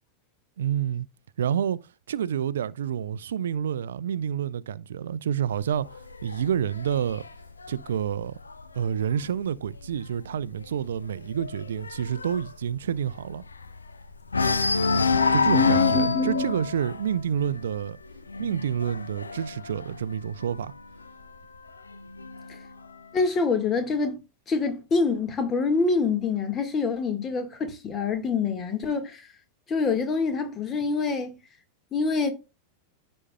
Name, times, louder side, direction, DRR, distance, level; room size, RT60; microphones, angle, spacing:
voice 1, 0.6-1.1 1.4-1.8 2.1-7.3 7.7-8.4 8.7-13.4 15.3-18.0 18.4-20.7, right 9 dB, 65° right, 0.4 m, -28 dB
sound 1, 5.5-9.1 9.5-9.9 10.1-10.2 10.6-13.9 14.3-20.8 21.7-22.7, left 4 dB, 75° left, 0.7 m, -28 dB
voice 2, 15.5-16.5 23.1-24.2 24.5-29.2 29.7-31.3 31.9-32.3, left 4 dB, 25° left, 1.5 m, -25 dB
14.5 x 5.3 x 2.2 m
figure-of-eight pair, 90°, 0 cm